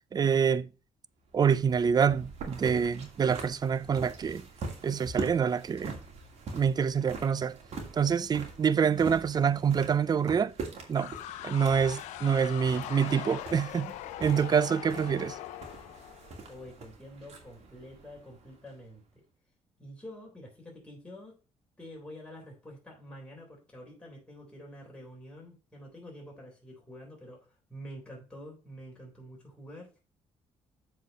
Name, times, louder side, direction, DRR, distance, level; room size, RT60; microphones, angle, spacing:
voice 1, 0.1-0.7 1.3-4.4 4.8-6.0 6.5-7.6 7.9-10.5 10.9-11.1 11.4-13.9 14.2-15.4, right 7 dB, 35° right, 0.5 m, -26 dB
sound 1, 1.3-19.0, right 3 dB, 60° right, 2.5 m, -44 dB
sound 2, 2.4-4.3 4.6-4.7 5.4-6.4, right 6 dB, 90° right, 1.6 m, -49 dB
sound 3, 11.0-16.7, left 13 dB, 90° left, 0.5 m, -42 dB
voice 2, 16.5-19.0 19.8-21.4 21.8-29.9, equal, 10° left, 3.7 m, -47 dB
7.5 x 4.6 x 5.3 m
cardioid pair, 85°, 12 cm